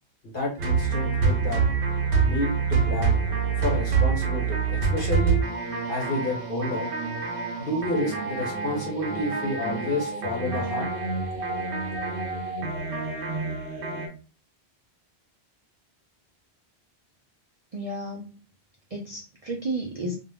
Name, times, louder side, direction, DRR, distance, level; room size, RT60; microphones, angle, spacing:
voice 1, 0.2-1.6 2.2-3.2 3.6-5.4 5.9-6.9 7.6-10.9, left 2 dB, 55° left, -2 dB, 1.2 m, -30 dB
sound 1, 0.6-14.1, right 5 dB, 90° right, 1.0 m, -26 dB
voice 2, 17.7-18.4 18.9-20.2, right 1 dB, 50° right, -1 dB, 0.4 m, -32 dB
2.3 x 2.3 x 3.4 m, 0.35 s
omnidirectional pair, 1.1 m